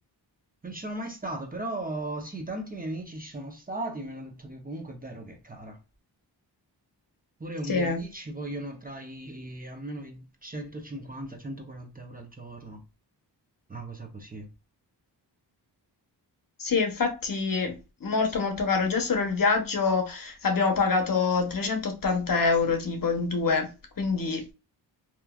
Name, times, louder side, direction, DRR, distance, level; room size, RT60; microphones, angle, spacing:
voice 1, 0.6-5.8 7.4-12.8 13.7-14.5, right 1 dB, 20° right, 0.7 m, -37 dB
voice 2, 7.7-8.0 16.6-17.7 18.0-23.7 24.0-24.4, left 4 dB, 50° left, 0.9 m, -25 dB
3.0 x 2.4 x 2.3 m
cardioid pair, 60°, 43 cm